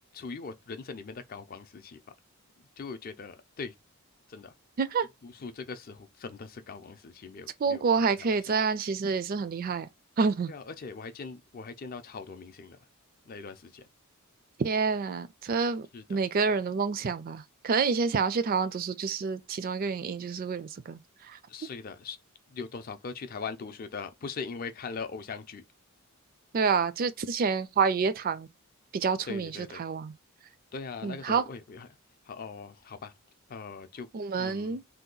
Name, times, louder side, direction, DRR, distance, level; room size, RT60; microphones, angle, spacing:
voice 1, 0.1-2.0 2.8-3.7 4.3-4.5 5.2-8.4 10.5-12.8 13.3-13.8 15.9-16.2 21.5-22.2 22.5-25.6 29.3-29.8 30.7-31.9 32.3-33.1 33.5-34.1 34.4-34.8, left 4 dB, 40° left, 0.4 m, -41 dB
voice 2, 7.6-9.9 10.2-10.5 14.6-21.4 26.5-28.5 28.9-30.1 31.0-31.4 34.1-34.8, right 5 dB, 40° right, 0.3 m, -28 dB
2.7 x 2.2 x 3.8 m
head